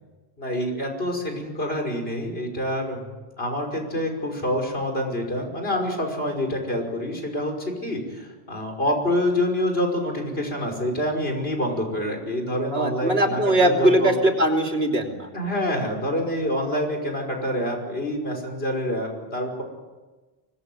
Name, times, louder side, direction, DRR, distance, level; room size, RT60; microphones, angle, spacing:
voice 1, 0.4-3.1 3.4-14.1 15.3-19.6, left 1 dB, 65° left, 3 dB, 6.0 m, -26 dB
voice 2, 12.7-15.3, right 1 dB, 70° right, 2 dB, 3.5 m, -21 dB
25.5 x 20.5 x 9.4 m, 1.2 s
omnidirectional pair, 1.1 m